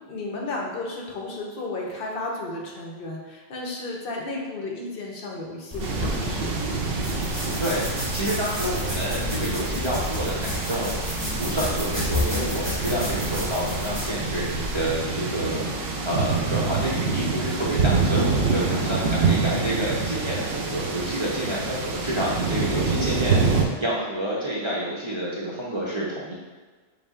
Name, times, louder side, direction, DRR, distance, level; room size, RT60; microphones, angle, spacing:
voice 1, 0.0-6.5 18.6-19.1, left 2 dB, 65° left, -1 dB, 0.8 m, -33 dB
sound 1, 5.7-15.0, left 1 dB, 10° right, 0.9 m, -31 dB
sound 2, 5.8-23.6, right 4 dB, 85° right, 0.8 m, -27 dB
voice 2, 8.1-11.0 11.4-15.7 16.0-26.3, right 1 dB, 35° right, -6 dB, 0.5 m, -29 dB
5.1 x 2.0 x 3.6 m, 1.4 s
omnidirectional pair, 1.0 m